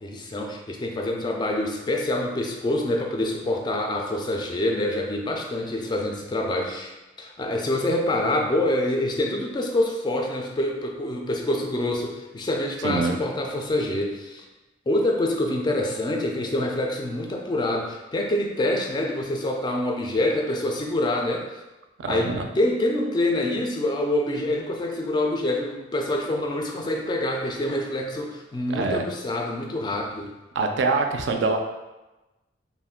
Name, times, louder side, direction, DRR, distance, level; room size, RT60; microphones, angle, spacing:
voice 1, 0.0-6.9 7.2-14.5 14.9-21.5 22.1-30.3, left 1 dB, 25° left, 1 dB, 0.3 m, -26 dB
voice 2, 12.8-13.2 22.0-22.5 28.7-29.0 30.6-31.6, right 3 dB, 70° right, 4 dB, 0.3 m, -24 dB
2.4 x 2.1 x 3.5 m, 1.1 s
head